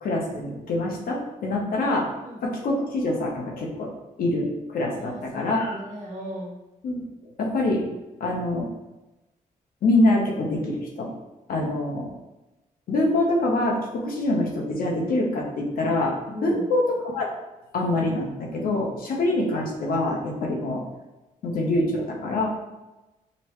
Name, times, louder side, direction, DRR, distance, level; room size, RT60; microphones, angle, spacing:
voice 1, 0.0-2.1 2.4-3.9 4.2-5.8 6.8-7.0 7.4-7.9 8.2-8.7 9.8-11.1 11.5-12.1 12.9-17.3 17.7-20.8 21.4-22.5, left 2 dB, 85° left, -1 dB, 0.9 m, -25 dB
voice 2, 4.9-6.6 16.3-16.7, equal, 55° right, -3 dB, 1.3 m, -37 dB
5.2 x 2.1 x 3.0 m, 1.0 s
cardioid pair, 115°, 15 cm